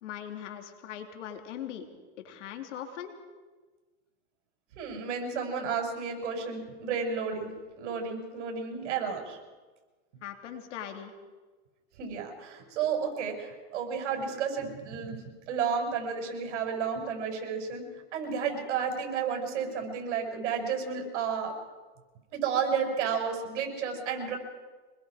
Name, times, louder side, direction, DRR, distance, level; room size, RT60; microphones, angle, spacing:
voice 1, 0.0-1.9 2.2-3.1 10.2-11.1, left 9 dB, 80° left, 5 dB, 3.0 m, -40 dB
voice 2, 4.8-7.5 7.8-9.4 12.0-15.2 15.5-17.8 18.1-21.5 22.3-24.4, right 6 dB, 75° right, 3 dB, 6.0 m, -32 dB
25.5 x 21.0 x 4.9 m, 1.3 s
supercardioid pair, 130°, 35 cm